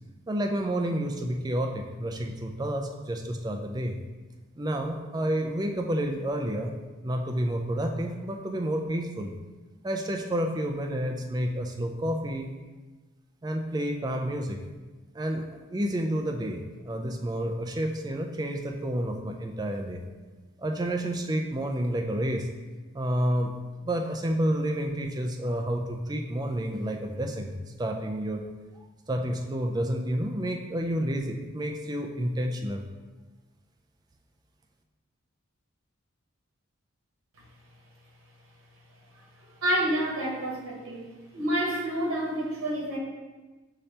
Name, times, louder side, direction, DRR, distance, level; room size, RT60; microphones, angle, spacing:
voice 1, 0.3-4.0 4.6-6.7 7.0-9.3 9.8-12.5 13.4-14.6 15.1-15.5 15.7-20.0 20.6-22.5 22.9-23.6 23.8-28.5 29.1-32.9, right 1 dB, 20° right, 3 dB, 0.3 m, -30 dB
voice 2, 39.4-41.1 41.3-43.0, right 1 dB, 80° right, -3 dB, 0.9 m, -29 dB
5.3 x 2.8 x 3.3 m, 1.2 s
head